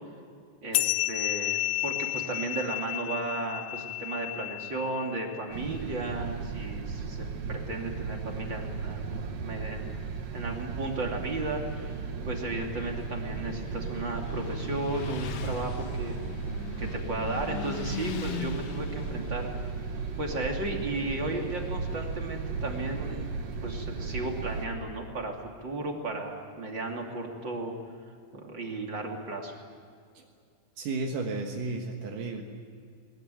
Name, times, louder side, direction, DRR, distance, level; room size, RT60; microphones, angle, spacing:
voice 1, 0.6-16.2 16.8-19.5 20.2-23.3 23.6-25.3 25.6-27.7 28.3-29.5, right 2 dB, 35° right, 1 dB, 3.2 m, -35 dB
sound 1, 0.7-5.6, left 16 dB, 85° left, 2.4 m, -32 dB
sound 2, 5.5-24.7, right 4 dB, 60° right, 2.6 m, -35 dB
Motorcycle, 12.3-22.0, left 8 dB, 60° left, 2.1 m, -42 dB
voice 2, 30.8-32.4, right 3 dB, 80° right, 1 dB, 3.1 m, -33 dB
22.0 x 21.5 x 9.2 m, 2.3 s
omnidirectional pair, 3.7 m